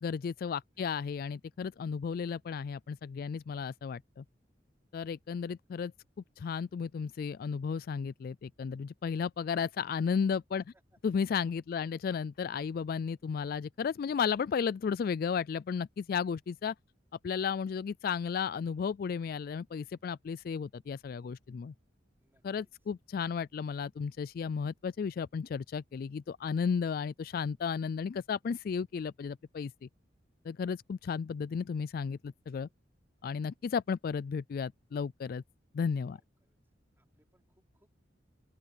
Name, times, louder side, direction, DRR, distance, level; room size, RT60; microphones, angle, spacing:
voice 1, 0.0-4.2 4.9-5.9 6.4-10.6 11.0-16.7 17.2-21.7 22.4-29.9 30.4-32.7 33.2-35.4 35.7-36.2, left 6 dB, 55° left, 0.3 m, -34 dB
voice 2, 10.6-11.0 11.7-12.0 22.2-22.4 36.1-36.6 37.0-38.0, right 1 dB, 15° right, 3.9 m, -70 dB
open air
head